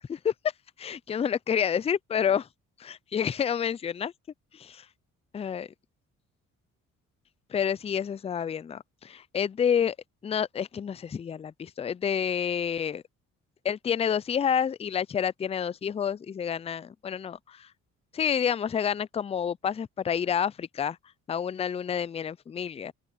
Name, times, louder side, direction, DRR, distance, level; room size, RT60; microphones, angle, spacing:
voice 1, 0.8-2.5 2.8-4.1 4.5-4.9 5.3-5.7 7.5-10.0 10.2-13.0 13.6-17.7 18.1-21.0 21.3-22.9, left 8 dB, 20° left, 0.4 m, -29 dB
cardioid pair, 90°, 30 cm